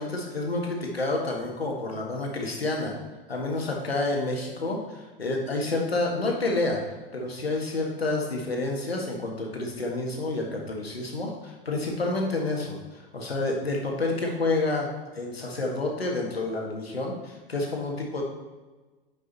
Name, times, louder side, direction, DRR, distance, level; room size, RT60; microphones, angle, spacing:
voice 1, 0.0-2.9 3.3-6.8 7.1-14.9 15.1-18.2, left 2 dB, 85° left, 0 dB, 1.7 m, -29 dB
9.8 x 5.4 x 4.1 m, 1.2 s
figure-of-eight pair, 90°, 30 cm